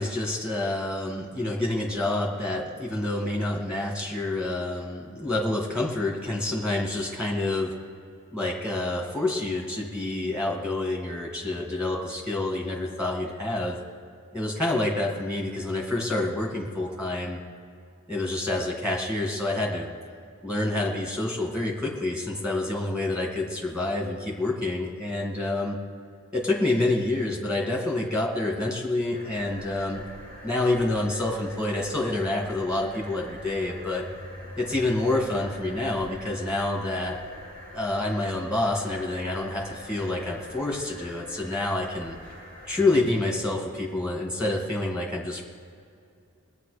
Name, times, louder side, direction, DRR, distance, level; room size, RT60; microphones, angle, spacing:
voice 1, 0.0-7.7 8.3-13.8 14.3-17.4 18.1-19.9 20.4-25.8 26.3-30.0 30.4-34.1 34.6-37.2 37.7-42.2 42.7-45.4, left 2 dB, 5° right, -2 dB, 2.0 m, -28 dB
sound 1, 29.1-43.2, left 1 dB, 40° right, 3.7 m, -44 dB
20.5 x 8.7 x 5.0 m, 2.4 s
head